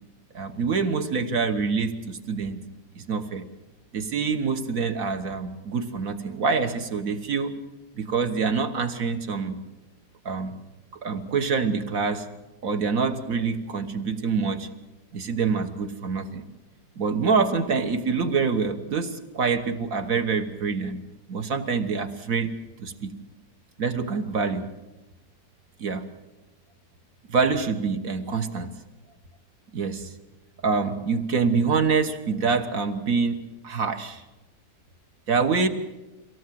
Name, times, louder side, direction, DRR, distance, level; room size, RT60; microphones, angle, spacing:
voice 1, 0.3-2.6 3.0-3.5 3.9-7.5 7.9-9.6 10.3-10.5 11.0-12.3 12.6-14.7 15.1-16.4 17.0-21.0 21.3-22.5 22.8-23.1 23.8-24.7 25.8-26.1 27.3-28.7 29.7-30.1 30.6-34.2 35.3-35.7, right 5 dB, 55° right, 7 dB, 1.7 m, -26 dB
24.0 x 17.5 x 7.7 m, 1.1 s
omnidirectional pair, 1.9 m